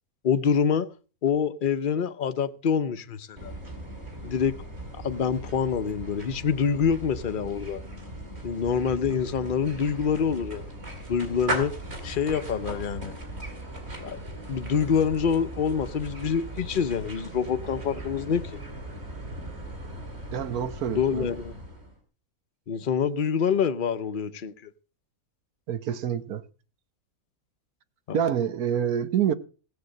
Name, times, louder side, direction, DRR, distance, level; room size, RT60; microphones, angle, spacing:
voice 1, 0.2-0.9 1.2-3.5 4.2-4.6 5.0-7.8 8.4-10.7 11.1-11.7 12.0-13.1 14.0-14.2 14.5-18.6 20.9-21.5 22.7-24.5, left 7 dB, 45° left, 0.8 m, -26 dB
sound 1, 3.4-22.0, right 1 dB, 45° right, 3.4 m, -38 dB
voice 2, 20.3-21.3 25.7-26.4 28.1-29.3, right 9 dB, 80° right, 1.4 m, -27 dB
16.5 x 7.9 x 6.4 m
omnidirectional pair, 1.5 m